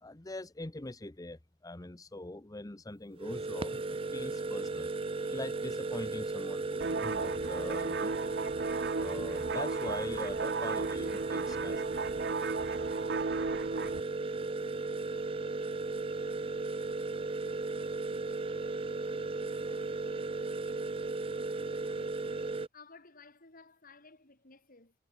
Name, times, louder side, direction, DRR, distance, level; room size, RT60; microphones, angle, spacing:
voice 1, 0.0-4.9 5.2-8.3 8.9-12.0, left 2 dB, 20° left, 0.9 m, -43 dB
sound 1, 3.2-22.7, right 3 dB, 30° right, 0.6 m, -35 dB
sound 2, 6.8-14.0, right 4 dB, 55° right, 0.9 m, -36 dB
voice 2, 19.4-20.0 21.5-22.1 22.7-24.9, left 4 dB, 45° left, 5.1 m, -57 dB
head